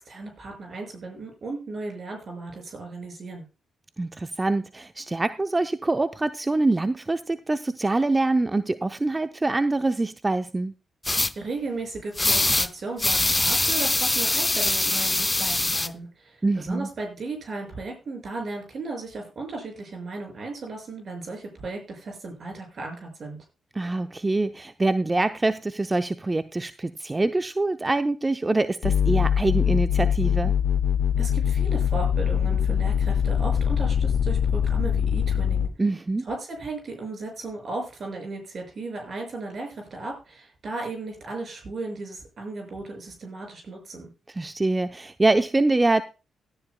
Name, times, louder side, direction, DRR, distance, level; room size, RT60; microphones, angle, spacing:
voice 1, 0.0-3.4 11.3-23.4 31.2-35.7 36.3-44.1, right 3 dB, 55° right, 2 dB, 6.1 m, -35 dB
voice 2, 4.0-10.7 16.4-16.9 23.7-30.5 35.8-36.3 44.3-46.0, right 2 dB, 25° right, 10 dB, 0.6 m, -25 dB
sound 1, 11.0-11.3 12.2-12.7 13.0-15.9, left 2 dB, 20° left, 0.6 m, -23 dB
sound 2, 28.8-35.7, left 8 dB, 75° left, 0.7 m, -23 dB
17.5 x 10.5 x 2.2 m, 0.30 s
supercardioid pair, 45°, 0 cm